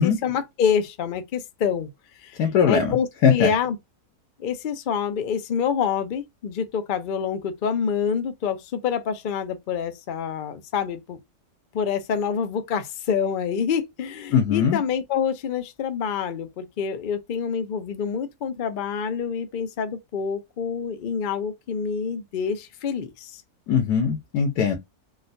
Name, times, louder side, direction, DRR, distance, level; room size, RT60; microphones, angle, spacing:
voice 1, 0.0-1.9 2.2-2.4 2.6-3.8 4.4-11.2 11.7-23.4, left 7 dB, 65° left, 0.5 m, -27 dB
voice 2, 2.4-2.9 3.2-3.5 14.3-14.8 23.7-24.8, left 7 dB, 85° left, 1.3 m, -20 dB
3.8 x 2.3 x 2.6 m
omnidirectional pair, 1.6 m